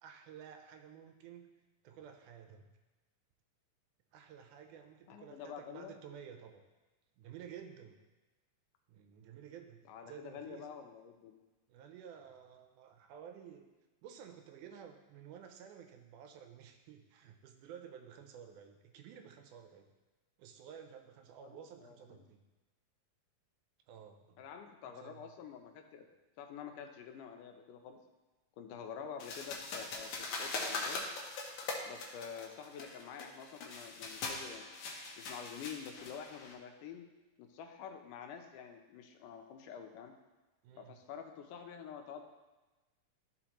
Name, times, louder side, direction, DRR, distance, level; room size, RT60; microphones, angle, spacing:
voice 1, 0.0-1.5 1.8-2.7 4.1-6.6 7.2-8.0 8.9-10.7 11.7-13.7 14.0-19.9 20.4-22.4 23.9-24.5 24.9-25.3 40.6-41.0, right 8 dB, 85° right, 6 dB, 2.1 m, -53 dB
voice 2, 5.1-5.9 9.9-11.4 21.4-22.2 24.4-26.1 26.4-28.0 28.6-31.0 31.8-34.6 35.2-37.0 37.4-40.1 40.8-42.2, left 7 dB, 85° left, 5 dB, 2.3 m, -48 dB
sound 1, 29.2-36.5, left 3 dB, 70° left, 2.1 m, -42 dB
12.5 x 4.2 x 3.0 m, 1.2 s
omnidirectional pair, 3.7 m